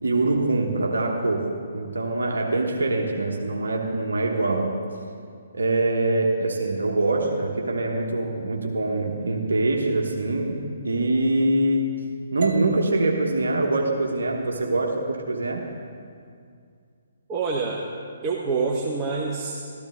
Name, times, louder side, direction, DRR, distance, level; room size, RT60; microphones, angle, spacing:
voice 1, 0.0-4.8 5.5-12.0 12.3-15.7, right 2 dB, 65° right, 1 dB, 1.1 m, -24 dB
sound 1, 12.4-16.5, right 3 dB, 45° right, 0.8 m, -40 dB
voice 2, 17.3-17.8 18.2-19.6, right 4 dB, 20° right, -3 dB, 0.9 m, -26 dB
14.0 x 13.0 x 3.6 m, 2.3 s
figure-of-eight pair, 130°, 0 cm